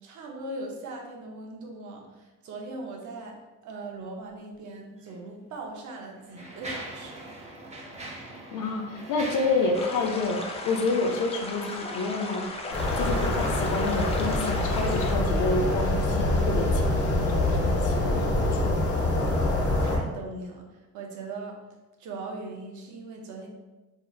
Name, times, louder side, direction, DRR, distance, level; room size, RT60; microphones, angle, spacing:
voice 1, 0.0-7.3 19.5-21.6 22.0-23.5, right 2 dB, 75° right, 1 dB, 0.7 m, -40 dB
Mechanisms, 5.0-5.1 5.9-11.6, right 1 dB, 20° right, 0.6 m, -42 dB
voice 2, 8.5-12.5 13.0-19.0, left 3 dB, 80° left, 3 dB, 0.5 m, -29 dB
sound 1, 9.7-15.1, left 2 dB, 20° left, 0.5 m, -36 dB
sound 2, 12.7-20.0, left 1 dB, 55° left, 0.9 m, -25 dB
3.1 x 2.8 x 2.3 m, 1.1 s
cardioid pair, 90°, 30 cm